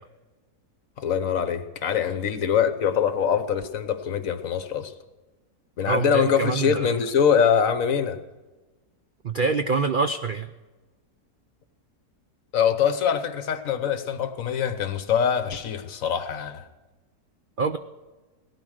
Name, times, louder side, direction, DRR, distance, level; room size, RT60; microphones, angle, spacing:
voice 1, 1.0-4.9 5.8-8.2 12.5-16.7, left 7 dB, 60° left, 11 dB, 1.3 m, -23 dB
voice 2, 5.9-7.0 9.2-10.5 17.6-17.8, right 4 dB, 60° right, 9 dB, 0.5 m, -25 dB
17.5 x 12.5 x 6.4 m, 1.2 s
omnidirectional pair, 1.7 m